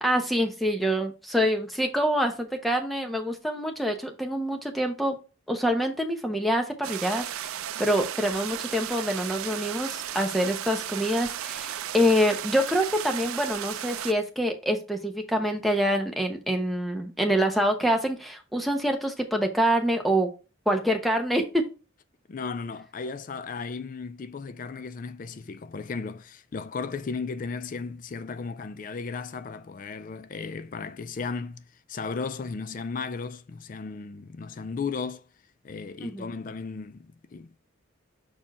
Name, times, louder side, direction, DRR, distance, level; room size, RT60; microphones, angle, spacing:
voice 1, 0.0-5.2 5.5-7.5 7.8-20.3 20.7-21.4 36.0-36.3, equal, ahead, 0.8 m, -26 dB
sound 1, 6.8-14.1, right 11 dB, 85° right, 0.5 m, -35 dB
voice 2, 22.3-35.2 35.6-37.6, left 4 dB, 40° left, 0.3 m, -35 dB
6.2 x 4.4 x 4.2 m
head